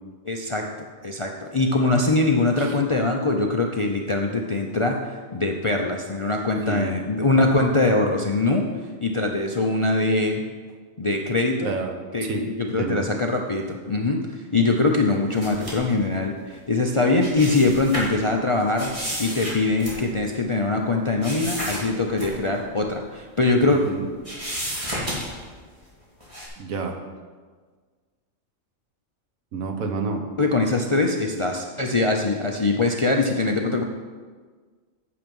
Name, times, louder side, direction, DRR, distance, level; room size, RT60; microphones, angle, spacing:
voice 1, 0.2-0.7 1.0-10.4 11.0-11.7 12.1-18.9 19.2-23.8 30.4-33.8, left 2 dB, 40° left, 2 dB, 0.4 m, -22 dB
voice 2, 11.6-12.0 12.2-13.0 19.3-19.4 23.7-24.1 26.6-27.0 29.5-30.3, right 4 dB, 90° right, 4 dB, 1.5 m, -29 dB
sound 1, 15.3-15.9 17.0-18.2 18.8-20.4 21.2-21.8 22.2-22.3 22.7-22.8 23.5-23.9 24.2-25.5 26.2-26.5, equal, 25° right, 2.6 m, -31 dB
8.6 x 7.3 x 5.4 m, 1.5 s
omnidirectional pair, 1.4 m